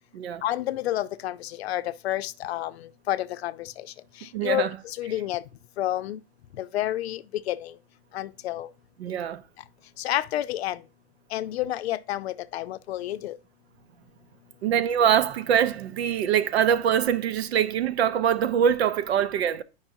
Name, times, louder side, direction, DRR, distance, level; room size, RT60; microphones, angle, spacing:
voice 1, 0.4-2.7 3.1-3.7 4.4-4.7 5.0-5.4 5.8-6.2 6.6-7.7 8.1-8.7 10.0-10.8 11.3-13.4, left 13 dB, 80° left, 0.6 m, -29 dB
voice 2, 4.3-4.8 9.0-9.4 14.6-19.6, right 9 dB, 85° right, 0.8 m, -23 dB
8.9 x 5.3 x 2.7 m
supercardioid pair, 140°, 31 cm